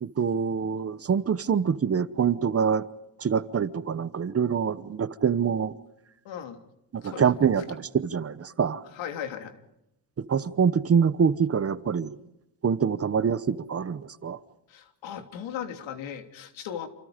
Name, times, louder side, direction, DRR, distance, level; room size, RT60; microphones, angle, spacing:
voice 1, 0.0-2.8 3.2-5.7 6.9-8.8 10.2-12.2 12.6-14.4, right 7 dB, 30° right, 1.0 m, -25 dB
voice 2, 6.2-6.6 7.0-7.5 8.9-9.6 14.7-16.9, left 9 dB, 85° left, 3.2 m, -37 dB
28.5 x 27.5 x 5.2 m
cardioid pair, 135°, 44 cm